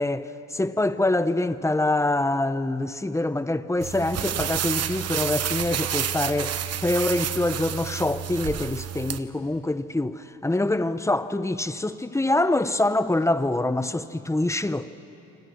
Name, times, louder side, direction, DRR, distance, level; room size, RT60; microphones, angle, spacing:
voice 1, 0.0-14.9, left 2 dB, 10° left, 0.9 m, -25 dB
sound 1, 3.8-9.2, right 9 dB, 55° right, 1.1 m, -29 dB
27.0 x 26.0 x 6.4 m
cardioid pair, 90°, 30 cm